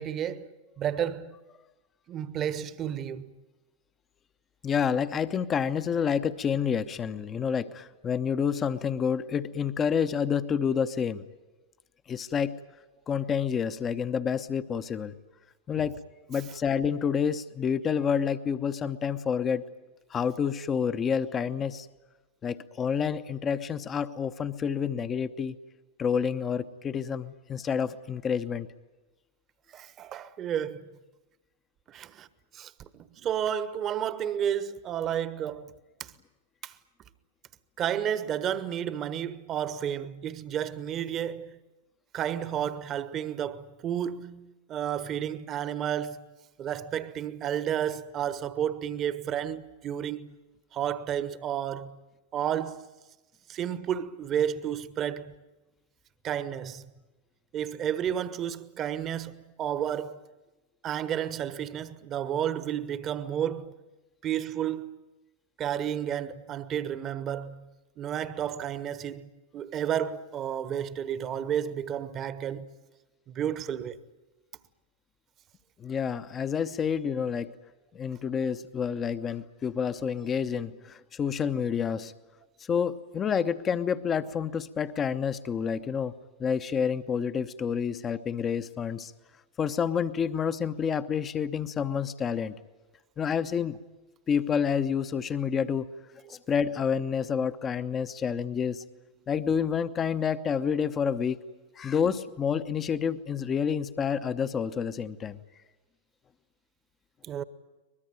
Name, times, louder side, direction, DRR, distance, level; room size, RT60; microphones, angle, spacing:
voice 1, 0.0-1.3 2.1-3.3 15.8-15.9 29.7-30.8 31.9-32.3 32.5-35.7 36.0-36.1 36.6-36.7 37.8-41.6 42.1-46.3 46.6-50.3 50.7-52.0 52.3-52.9 53.5-55.3 56.2-56.9 57.5-60.2 60.8-63.7 64.2-65.0 65.6-67.7 68.0-72.7 73.3-74.0 96.3-96.4 107.2-107.4, right 9 dB, 30° right, 1.2 m, -32 dB
voice 2, 4.6-11.2 12.1-12.6 13.1-15.1 15.7-16.0 16.3-19.6 20.1-21.9 22.4-25.6 26.0-28.7 75.8-77.5 77.9-82.1 82.7-86.1 86.4-89.1 89.6-92.5 93.2-93.8 94.3-95.9 96.3-98.8 99.3-101.4 101.8-105.4, left 7 dB, 25° left, 0.9 m, -28 dB
23.5 x 21.5 x 9.1 m
figure-of-eight pair, 90°, 0 cm